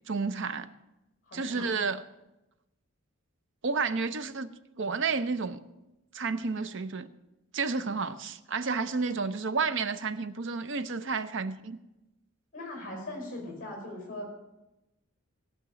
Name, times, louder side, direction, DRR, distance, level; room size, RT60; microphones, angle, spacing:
voice 1, 0.1-0.7 1.3-2.0 3.6-5.6 6.1-7.1 7.5-11.8, right 4 dB, 60° right, 0.6 m, -31 dB
voice 2, 1.3-1.7 12.5-14.3, left 1 dB, 40° left, 5.0 m, -40 dB
17.0 x 5.9 x 6.9 m
head